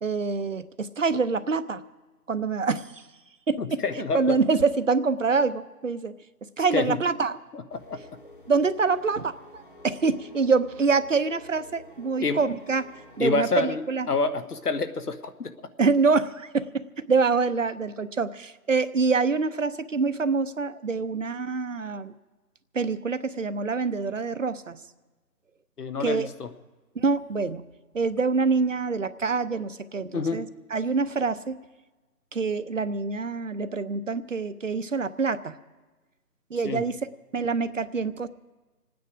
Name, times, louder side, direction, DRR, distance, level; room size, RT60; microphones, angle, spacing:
voice 1, 0.0-1.8 2.3-3.0 3.5-6.1 6.6-7.4 8.5-12.9 13.2-14.1 15.8-16.7 17.1-22.1 22.7-24.8 26.0-26.3 27.0-27.6 27.9-30.5 30.7-31.6 32.3-35.6 36.5-37.0 37.3-38.3, right 4 dB, 55° right, 13 dB, 0.7 m, -25 dB
voice 2, 3.6-4.4 6.7-7.0 7.5-8.0 12.2-12.4 13.2-15.5 25.8-26.5 30.1-30.4 36.6-36.9, left 4 dB, 70° left, 10 dB, 1.2 m, -28 dB
sound 1, 7.7-13.4, left 1 dB, 30° left, 0.9 m, -50 dB
26.5 x 9.5 x 4.9 m, 1.2 s
figure-of-eight pair, 170°, 48 cm